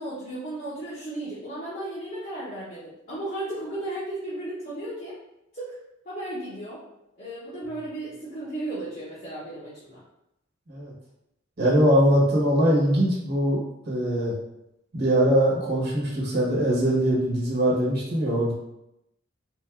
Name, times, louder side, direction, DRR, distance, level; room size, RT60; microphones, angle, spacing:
voice 1, 0.0-5.2 5.5-5.8 6.0-6.8 7.2-10.0, right 1 dB, 40° left, -11 dB, 1.0 m, -35 dB
voice 2, 11.6-13.6 13.8-14.3 14.9-18.5, equal, 50° right, -5 dB, 1.2 m, -22 dB
3.8 x 3.4 x 2.4 m, 0.87 s
head